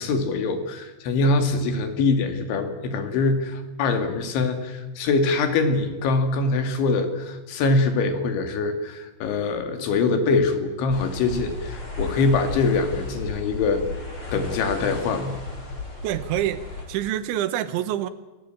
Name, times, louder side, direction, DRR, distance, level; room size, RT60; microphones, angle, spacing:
voice 1, 0.0-13.8 14.3-15.4, left 3 dB, 85° left, 4.7 m, -23 dB
sound 1, 10.9-16.8, left 2 dB, 30° left, 5.7 m, -34 dB
voice 2, 16.0-18.1, right 12 dB, 90° right, 3.6 m, -26 dB
28.5 x 18.0 x 8.9 m
omnidirectional pair, 5.2 m